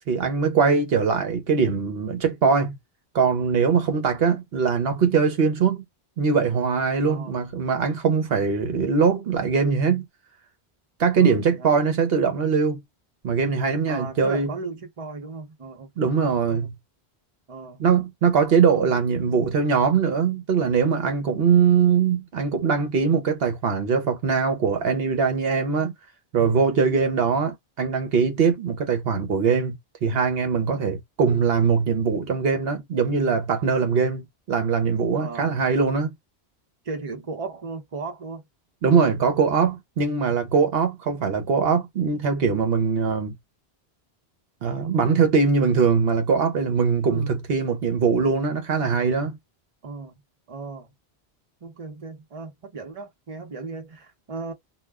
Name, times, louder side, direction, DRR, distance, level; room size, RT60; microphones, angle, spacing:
voice 1, 0.1-2.8 3.1-5.8 6.2-10.1 11.0-12.8 13.2-14.5 16.0-16.7 17.8-25.9 26.3-29.7 30.0-36.1 38.8-43.3 44.6-49.4, right 5 dB, 65° right, 0.9 m, -22 dB
voice 2, 7.0-7.4 11.2-11.7 13.9-16.1 16.5-16.7 17.5-17.8 18.7-19.5 35.2-35.5 36.8-38.4 47.1-47.3 49.8-50.1 50.5-50.9 51.6-54.5, right 4 dB, 35° right, 0.8 m, -36 dB
2.3 x 2.1 x 3.3 m
omnidirectional pair, 1.1 m